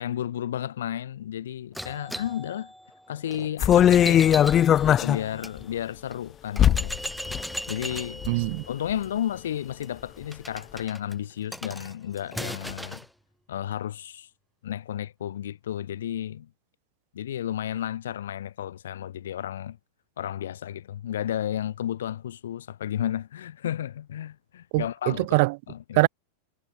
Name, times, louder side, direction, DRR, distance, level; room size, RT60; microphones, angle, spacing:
voice 1, 0.0-2.7 3.1-4.3 4.8-7.0 7.7-8.3 8.7-13.0 13.5-14.3 14.6-16.5 17.1-19.8 20.2-25.4 25.7-26.1, left 10 dB, 60° left, 3.4 m, -32 dB
sound 1, 1.7-5.5 6.1-6.2 6.6-13.1, equal, ahead, 3.2 m, -38 dB
sound 2, 3.6-5.2 5.6-5.7 6.6-7.0 7.3-7.4 7.9-8.5 8.9-9.0, left 10 dB, 30° left, 1.1 m, -19 dB
voice 2, 8.3-8.6 24.7-25.6 25.9-26.1, right 26 dB, 50° right, 0.6 m, -23 dB
figure-of-eight pair, 90°, 0 cm